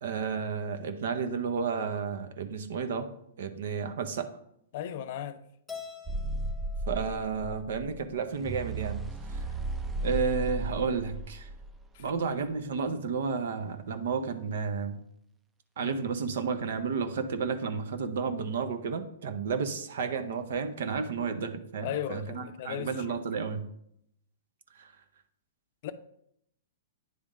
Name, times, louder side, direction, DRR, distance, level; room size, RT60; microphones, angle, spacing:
voice 1, 0.0-3.1 3.4-4.3 6.9-9.0 10.0-11.5 12.0-15.0 15.8-23.6 24.8-24.9, right 5 dB, 70° right, 0.7 m, -32 dB
voice 2, 4.7-5.4 11.9-12.0 15.8-16.0 21.8-23.5 25.8-25.9, left 10 dB, 55° left, 0.5 m, -37 dB
Keyboard (musical), 5.7-8.0, left 6 dB, 10° left, 1.0 m, -47 dB
sound 1, 6.1-12.1, right 2 dB, 15° right, 0.5 m, -35 dB
9.4 x 3.5 x 3.7 m
hypercardioid pair, 120°, 0 cm